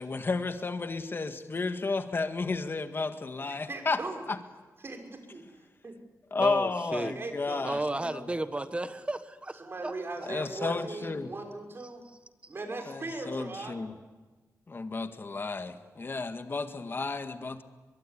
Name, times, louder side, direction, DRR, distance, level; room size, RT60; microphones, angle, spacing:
voice 1, 0.0-4.0 6.3-7.8 8.1-8.2 10.3-11.3 12.9-13.9 14.7-17.6, left 3 dB, 40° left, 8 dB, 1.8 m, -32 dB
voice 2, 3.4-4.3 4.8-5.9 7.1-7.7 9.6-12.1 12.5-13.8, right 3 dB, 40° right, 3 dB, 5.8 m, -39 dB
voice 3, 6.4-7.1 7.6-9.9 10.2-10.3, right 2 dB, 20° right, 11 dB, 1.4 m, -33 dB
23.0 x 22.5 x 9.9 m, 1.3 s
wide cardioid pair, 95°, 6 cm